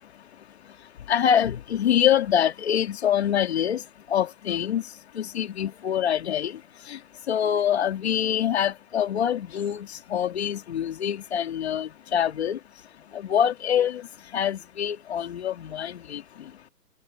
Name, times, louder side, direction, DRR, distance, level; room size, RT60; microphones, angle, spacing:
voice 1, 1.1-3.8 4.1-4.8 5.2-6.5 6.9-7.0 7.3-12.6 13.1-14.0 14.3-16.2, left 9 dB, 40° left, 2.0 m, -25 dB
hypercardioid pair, 160°, 48 cm